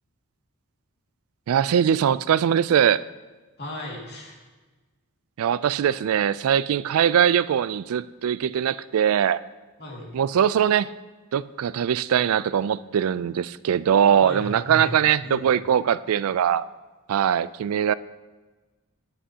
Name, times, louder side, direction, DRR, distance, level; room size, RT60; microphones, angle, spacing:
voice 1, 1.5-3.0 5.4-9.4 10.1-10.9 11.3-16.6 17.1-17.9, right 9 dB, 70° right, 18 dB, 0.3 m, -21 dB
voice 2, 3.6-4.4 9.8-10.1 14.2-14.9 15.2-15.4, left 1 dB, 50° left, -1 dB, 2.2 m, -35 dB
13.5 x 9.9 x 2.8 m, 1.3 s
head